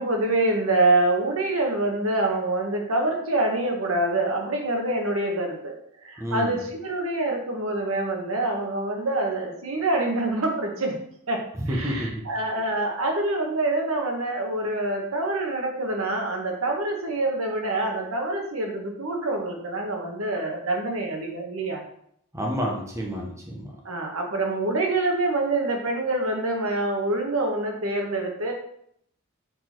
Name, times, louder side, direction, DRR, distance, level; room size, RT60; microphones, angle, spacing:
voice 1, 0.0-10.9 11.3-21.8 23.8-28.5, right 2 dB, 70° right, 1 dB, 1.4 m, -26 dB
voice 2, 6.2-6.6 11.6-12.1 22.3-23.7, equal, 15° right, -1 dB, 0.9 m, -29 dB
6.6 x 4.1 x 4.5 m, 0.69 s
head